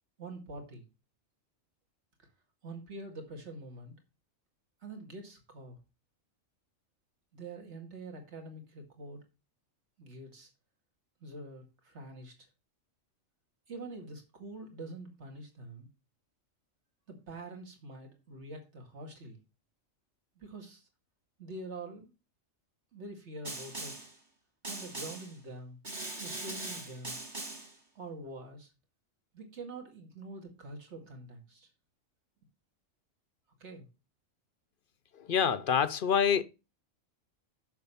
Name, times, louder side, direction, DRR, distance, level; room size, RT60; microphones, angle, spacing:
voice 1, 0.2-0.8 2.2-2.3 2.6-3.9 4.8-5.8 7.3-9.2 10.0-10.5 11.2-12.5 13.7-15.9 17.1-19.4 20.4-20.9 21.4-22.1 22.9-23.9 24.7-25.8 26.2-27.2 27.9-28.7 29.3-31.7 33.6-33.9, right 2 dB, 60° right, 2.4 m, -45 dB
Snare drum, 23.4-24.1 24.6-25.3 25.8-27.7, right 2 dB, 35° right, 2.7 m, -40 dB
voice 2, 35.3-36.4, left 7 dB, 50° left, 0.7 m, -26 dB
7.1 x 6.5 x 5.6 m
omnidirectional pair, 1.4 m